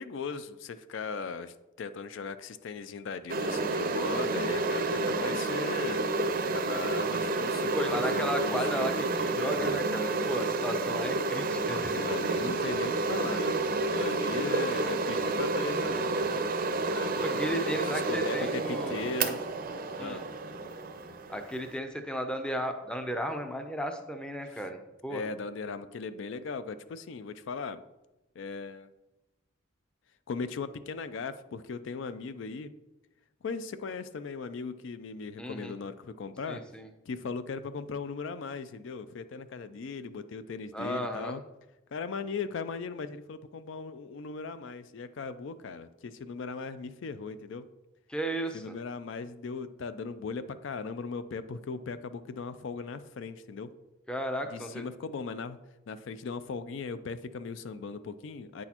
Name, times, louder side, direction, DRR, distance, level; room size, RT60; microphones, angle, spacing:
voice 1, 0.0-8.9 11.6-16.6 16.9-19.4 20.0-20.2 24.4-24.7 25.1-27.8 28.4-28.9 30.3-32.7 33.4-36.6 37.1-41.4 41.9-47.6 48.5-53.7 54.5-55.6 55.9-58.6, left 5 dB, 60° left, 12 dB, 0.4 m, -38 dB
sound 1, 3.3-21.8, right 3 dB, 45° right, 0.5 m, -30 dB
voice 2, 7.7-12.0 17.2-19.0 20.0-20.2 21.3-25.3 35.4-35.7 36.5-36.9 40.7-41.4 48.1-48.8 54.1-54.8, equal, 5° left, 6 dB, 0.5 m, -34 dB
8.8 x 6.2 x 2.9 m, 0.99 s
head